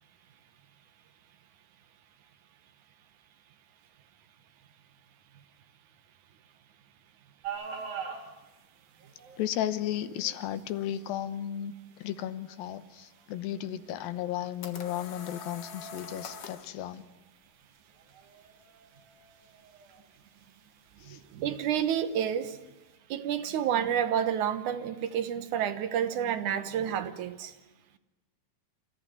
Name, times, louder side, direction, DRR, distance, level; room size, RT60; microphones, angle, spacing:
sound 1, 7.4-23.0, right 6 dB, 85° right, 4.6 m, -48 dB
voice 1, 9.4-11.7 12.0-17.0 21.1-21.2, left 11 dB, 90° left, 13 dB, 2.8 m, -34 dB
sound 2, 14.2-16.7, left 5 dB, 50° left, 2.0 m, -44 dB
voice 2, 21.0-22.6 23.1-27.5, right 9 dB, 65° right, 10 dB, 2.5 m, -29 dB
27.5 x 14.5 x 9.9 m, 1.1 s
omnidirectional pair, 4.0 m